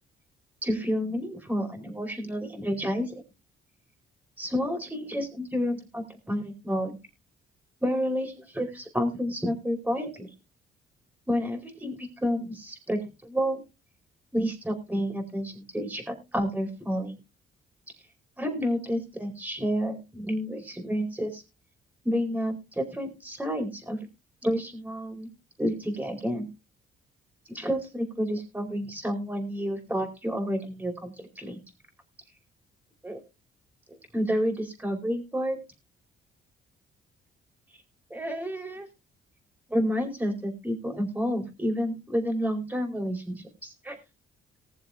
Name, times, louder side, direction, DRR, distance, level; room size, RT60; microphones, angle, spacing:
voice 1, 0.6-3.1 4.4-7.0 7.8-10.3 11.3-13.6 14.3-17.2 18.4-21.4 22.0-24.0 24.4-25.3 25.6-26.5 27.5-31.6 33.0-33.2 34.1-35.6 38.1-38.9 39.7-44.0, equal, 10° right, 3 dB, 4.5 m, -30 dB
19.5 x 7.4 x 3.5 m, 0.28 s
cardioid pair, 90°, 20 cm